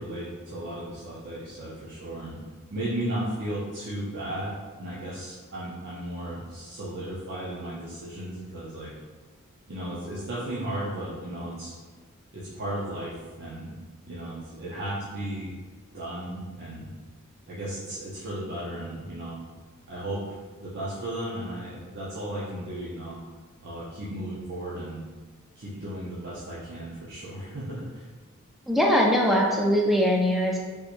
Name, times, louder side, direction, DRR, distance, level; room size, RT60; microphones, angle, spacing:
voice 1, 0.0-2.4 2.7-8.9 9.7-11.7 12.3-13.7 14.1-15.6 15.9-16.9 17.5-19.4 19.9-20.2 20.6-23.2 23.6-25.0 25.6-28.1, right 1 dB, 50° right, -8 dB, 0.6 m, -35 dB
voice 2, 28.7-30.6, equal, ahead, -1 dB, 0.4 m, -21 dB
3.5 x 2.9 x 2.5 m, 1.3 s
head